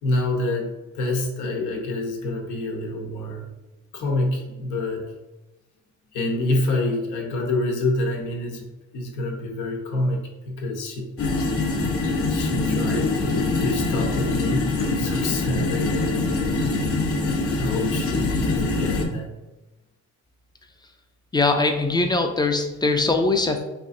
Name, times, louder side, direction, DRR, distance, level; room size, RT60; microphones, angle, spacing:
voice 1, 0.0-3.5 3.9-5.1 6.1-11.1 12.3-16.6 17.6-19.3, left 2 dB, 90° left, 1 dB, 0.8 m, -27 dB
sound 1, 11.2-19.0, left 3 dB, 50° left, 0.7 m, -24 dB
voice 2, 21.3-23.6, left 3 dB, 15° left, 5 dB, 0.4 m, -21 dB
4.2 x 2.5 x 2.5 m, 1.0 s
cardioid pair, 90°, 30 cm